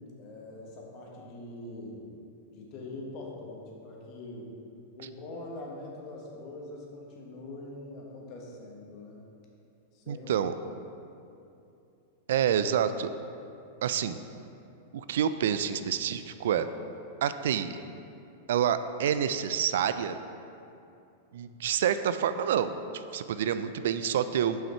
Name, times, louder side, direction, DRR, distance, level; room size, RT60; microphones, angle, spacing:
voice 1, 0.2-2.1 2.5-4.5 4.9-9.2 9.9-10.5, left 2 dB, 45° left, -1 dB, 1.4 m, -43 dB
voice 2, 10.1-10.5 12.3-13.1 13.8-14.2 14.9-16.7 17.2-17.8 18.5-20.2 21.3-24.6, right 9 dB, 75° right, 12 dB, 0.3 m, -28 dB
5.8 x 5.6 x 4.4 m, 2.7 s
hypercardioid pair, 135°, 0 cm